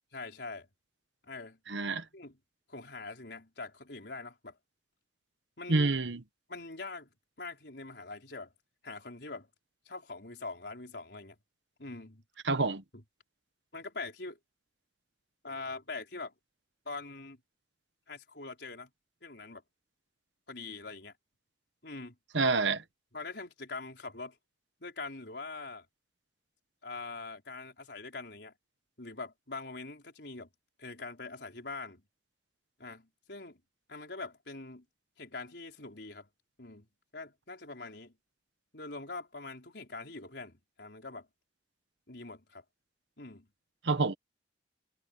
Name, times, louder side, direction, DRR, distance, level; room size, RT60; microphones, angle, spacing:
voice 1, 0.1-0.7 1.2-1.6 2.1-2.4 2.7-4.6 5.6-5.9 6.5-8.5 8.8-9.5 9.9-11.4 11.8-12.2 12.9-13.0 13.7-14.4 15.4-16.3 16.8-17.4 18.1-18.9 19.2-19.6 20.5-21.1 21.8-22.2 23.1-24.4 24.8-25.9 26.8-28.5 29.0-30.5 30.8-32.0 32.8-33.6 33.9-34.8 35.2-36.3 36.6-36.9 37.1-38.2 38.7-41.3 42.1-42.6 43.2-43.5, left 3 dB, 70° left, 4.2 m, -43 dB
voice 2, 1.7-2.0 5.7-6.2 12.5-12.8 22.3-22.8 43.8-44.1, right 3 dB, 85° right, 1.3 m, -27 dB
head